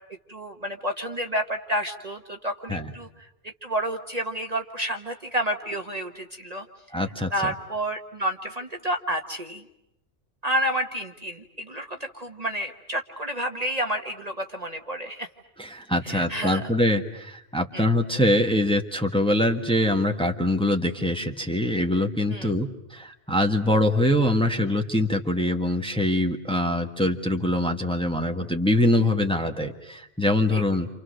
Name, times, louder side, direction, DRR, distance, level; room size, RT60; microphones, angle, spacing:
voice 1, 0.3-6.7 7.3-9.6 10.4-15.3 16.0-16.6 17.7-17.9 22.3-22.5 30.5-30.6, right 1 dB, 35° right, 4 dB, 1.4 m, -30 dB
voice 2, 6.9-7.5 15.6-30.9, left 1 dB, 5° left, 3 dB, 1.5 m, -24 dB
30.0 x 28.0 x 6.5 m, 0.83 s
omnidirectional pair, 1.2 m